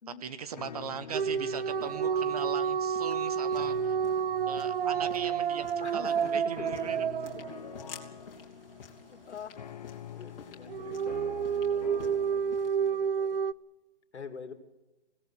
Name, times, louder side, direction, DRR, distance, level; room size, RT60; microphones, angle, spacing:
voice 1, 0.2-4.0 4.5-7.0 11.0-11.2 12.0-12.3, right 7 dB, 35° right, 14 dB, 1.0 m, -40 dB
sound 1, 0.6-12.6, left 8 dB, 35° left, 0.8 m, -47 dB
sound 2, 1.1-8.1 10.7-13.5, right 7 dB, 55° right, 0.6 m, -30 dB
sound 3, 1.4-12.9, left 7 dB, 55° left, 3.1 m, -53 dB
voice 2, 5.8-6.9 7.5-7.6 9.1-9.6 10.1-13.4 14.1-14.5, left 6 dB, 75° left, 9 dB, 2.9 m, -46 dB
22.0 x 17.5 x 8.3 m, 1.0 s
hypercardioid pair, 165°, 34 cm